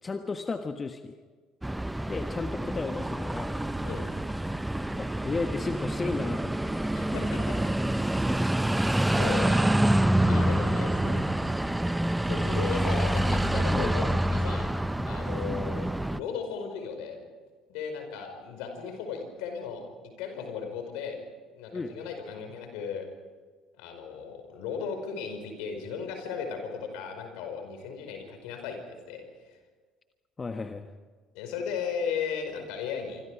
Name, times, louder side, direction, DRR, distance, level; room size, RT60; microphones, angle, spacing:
voice 1, 0.0-1.2 2.1-3.6 5.0-6.8 10.2-10.5 13.7-14.0 15.5-15.6 21.7-21.9 30.4-30.9, left 4 dB, 30° left, 7 dB, 1.4 m, -34 dB
sound 1, 1.6-16.2, right 1 dB, 5° right, 0.7 m, -27 dB
voice 2, 7.0-7.6 9.1-9.7 10.3-11.2 12.2-14.7 15.1-17.2 17.7-19.8 20.2-21.2 21.6-23.1 23.8-29.2 31.3-33.2, left 6 dB, 70° left, 5 dB, 5.1 m, -36 dB
26.5 x 25.5 x 5.0 m, 1.4 s
hypercardioid pair, 60°, 0 cm